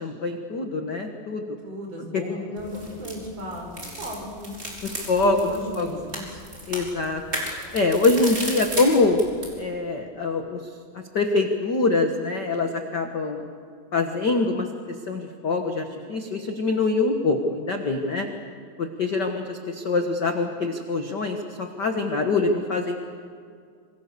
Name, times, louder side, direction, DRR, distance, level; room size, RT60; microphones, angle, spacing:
voice 1, 0.0-1.4 4.8-5.4 5.8-5.9 6.7-7.2 7.7-9.2 9.6-10.6 10.9-13.5 13.9-14.7 15.1-18.3 18.8-23.0, left 3 dB, 55° left, 4 dB, 1.2 m, -24 dB
voice 2, 1.6-4.6 5.2-6.4, equal, 45° right, 1 dB, 6.3 m, -35 dB
sound 1, 2.6-9.6, right 1 dB, 15° right, 5.1 m, -35 dB
26.5 x 26.0 x 6.9 m, 2.2 s
omnidirectional pair, 4.1 m